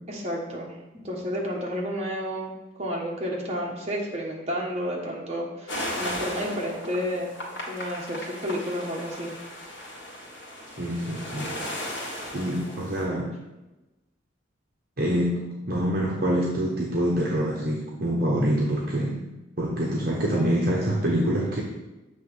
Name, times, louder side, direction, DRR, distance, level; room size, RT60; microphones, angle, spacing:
voice 1, 0.1-0.7 1.0-2.5 2.8-7.3 7.7-9.3, equal, 35° right, -3 dB, 1.3 m, -31 dB
sound 1, 5.7-13.0, left 1 dB, 75° left, 1.5 m, -36 dB
voice 2, 10.8-11.5 12.3-13.3 15.0-19.1 19.6-21.6, equal, 50° right, -3 dB, 0.9 m, -25 dB
7.6 x 3.0 x 6.1 m, 1.0 s
head